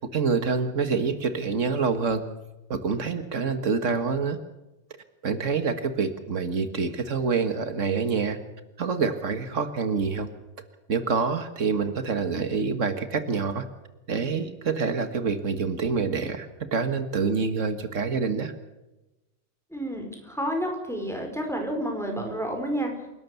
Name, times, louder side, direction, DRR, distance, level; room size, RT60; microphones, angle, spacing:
voice 1, 0.1-2.3 2.7-4.4 5.2-8.4 8.8-10.3 10.9-13.7 14.1-18.5, right 5 dB, 80° right, 9 dB, 1.9 m, -26 dB
voice 2, 19.7-22.9, equal, ahead, 2 dB, 5.2 m, -30 dB
28.5 x 12.5 x 8.2 m, 1.0 s
omnidirectional pair, 1.3 m